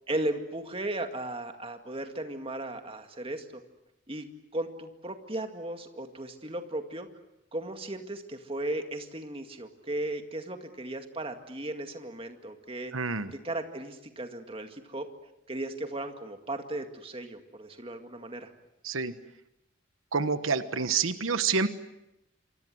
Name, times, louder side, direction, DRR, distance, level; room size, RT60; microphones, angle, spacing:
voice 1, 0.1-3.6 4.1-4.3 4.5-7.1 7.5-12.9 13.3-15.1 15.5-18.5, right 1 dB, 30° right, 6 dB, 2.1 m, -36 dB
voice 2, 12.9-13.3 18.8-19.1 20.1-21.7, right 5 dB, 90° right, 11 dB, 1.2 m, -27 dB
27.5 x 25.0 x 7.9 m, 0.88 s
head